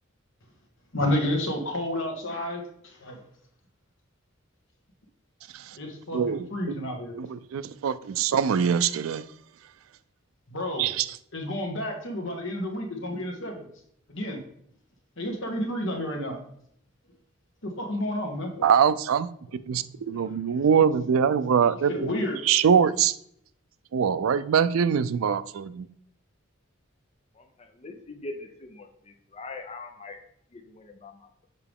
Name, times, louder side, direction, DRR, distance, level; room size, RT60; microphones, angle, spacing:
voice 1, 0.9-3.2 5.8-7.2 10.5-10.9 11.3-13.6 14.1-14.4 15.2-16.4 17.6-18.7 19.7-19.8 21.9-22.4, left 1 dB, 65° left, 1.5 m, -30 dB
voice 2, 6.1-6.7 7.2-9.2 10.8-11.2 18.6-19.3 19.7-21.9 22.4-23.2 23.9-25.9, right 7 dB, 80° right, 0.4 m, -23 dB
voice 3, 27.4-30.2 30.5-31.5, left 3 dB, 30° left, 0.5 m, -42 dB
6.8 x 4.7 x 3.5 m
head